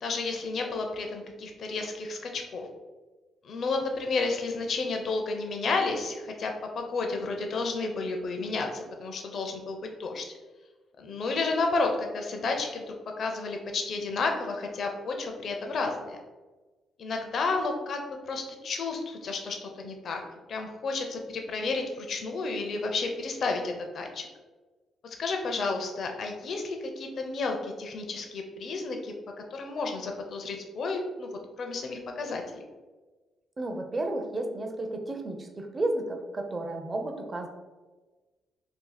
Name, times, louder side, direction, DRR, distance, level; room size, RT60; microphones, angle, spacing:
voice 1, 0.0-2.7 3.4-10.2 11.0-16.2 17.0-20.2 20.5-24.3 25.0-29.1 29.5-32.6, left 3 dB, 55° left, 3 dB, 0.5 m, -31 dB
voice 2, 33.6-37.5, right 2 dB, 30° right, 4 dB, 0.5 m, -32 dB
2.7 x 2.4 x 3.9 m, 1.3 s
cardioid pair, 90°, 0 cm